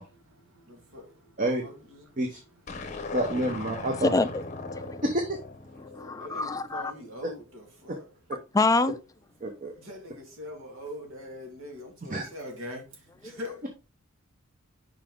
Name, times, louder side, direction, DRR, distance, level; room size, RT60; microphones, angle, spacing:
voice 1, 0.0-2.2 4.8-5.0 5.8-8.1 9.8-13.7, left 1 dB, 80° right, 2.1 m, -43 dB
sound 1, 2.7-7.1, left 3 dB, 35° left, 0.7 m, -39 dB
voice 2, 3.1-4.1 5.0-5.4 7.9-8.0 9.4-9.7 12.1-12.3, right 1 dB, 40° right, 0.9 m, -28 dB
voice 3, 4.0-5.0 5.8-6.9 8.5-9.0 13.2-13.4, left 3 dB, 15° left, 0.4 m, -26 dB
5.6 x 5.0 x 3.7 m
head